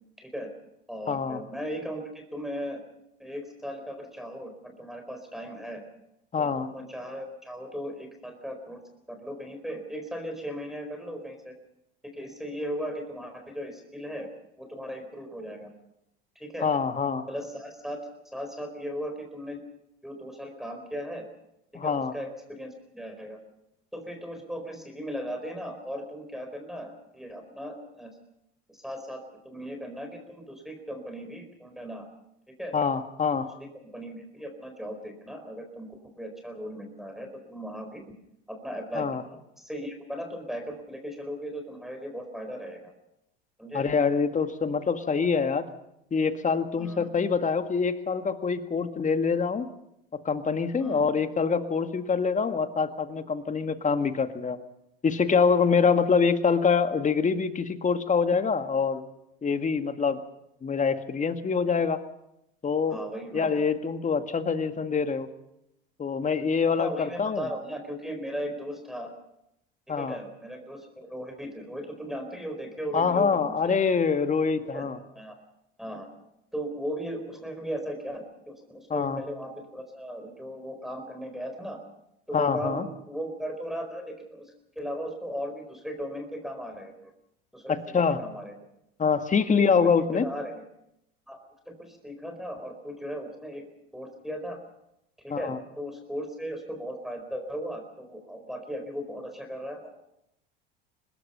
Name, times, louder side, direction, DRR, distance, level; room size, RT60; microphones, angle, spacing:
voice 1, 0.2-0.5 0.9-2.8 3.2-5.8 6.4-8.8 9.1-11.5 12.1-14.3 14.6-15.7 16.3-16.6 17.3-18.0 18.2-19.6 20.0-21.2 21.7-23.4 23.9-28.1 28.7-29.2 29.4-32.0 32.5-32.7 33.4-33.5 33.9-35.9 36.2-38.0 38.5-39.2 39.6-42.9 43.6-43.8 46.8-47.1 50.8-51.0 55.8-55.9 62.9-63.6 66.8-69.1 69.9-73.8 74.7-74.9 75.1-75.3 75.8-76.1 76.5-81.8 82.3-87.1 87.5-88.5 89.5-90.6 91.3-91.4 91.7-93.6 93.9-94.6 95.2-99.9, equal, ahead, 3 dB, 4.5 m, -37 dB
voice 2, 1.1-1.4 6.3-6.7 16.6-17.2 21.7-22.1 32.7-33.5 39.0-39.2 43.7-45.7 46.1-49.7 50.1-54.6 55.0-59.0 59.4-60.2 60.6-62.0 62.6-63.0 63.3-65.3 66.0-67.5 69.9-70.2 72.9-75.0 78.9-79.2 82.3-82.9 87.7-88.2 89.0-90.3 95.3-95.6, left 5 dB, 25° left, 9 dB, 1.9 m, -25 dB
25.0 x 20.5 x 5.7 m, 0.82 s
hypercardioid pair, 75°, 29 cm